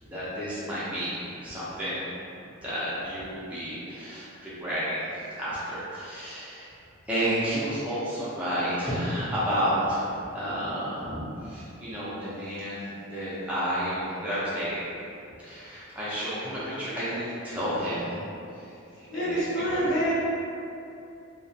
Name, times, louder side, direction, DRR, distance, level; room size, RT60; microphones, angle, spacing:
voice 1, 0.0-2.1 2.6-6.7 7.1-14.9 15.4-18.2 18.5-19.8, equal, 5° right, -11 dB, 0.5 m, -31 dB
voice 2, 19.1-20.2, right 1 dB, 65° left, -8 dB, 0.7 m, -26 dB
2.4 x 2.1 x 2.6 m, 2.7 s
head